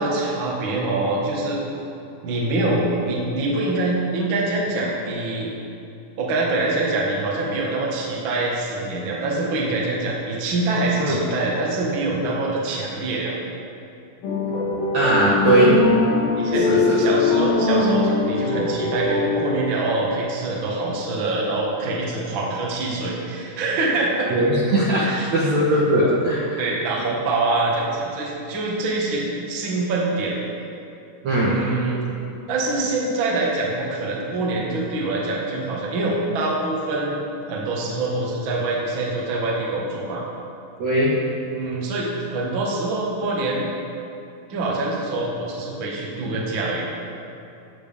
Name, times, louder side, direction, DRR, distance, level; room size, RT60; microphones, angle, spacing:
voice 1, 0.0-1.6 2.2-5.6 6.2-13.3 16.4-24.3 24.9-25.3 26.0-26.1 26.6-30.4 31.5-32.0 32.5-40.2 41.5-43.7 44.5-46.9, right 2 dB, 45° right, -4 dB, 1.6 m, -25 dB
sound 1, 14.2-19.7, left 3 dB, 65° left, 3.2 m, -21 dB
voice 2, 14.9-15.8 16.6-17.2 24.3-25.1 25.3-26.6 31.2-31.6 40.8-41.1 46.3-46.4, right 1 dB, 65° right, -6 dB, 1.9 m, -19 dB
18.5 x 7.7 x 3.5 m, 2.7 s
omnidirectional pair, 4.6 m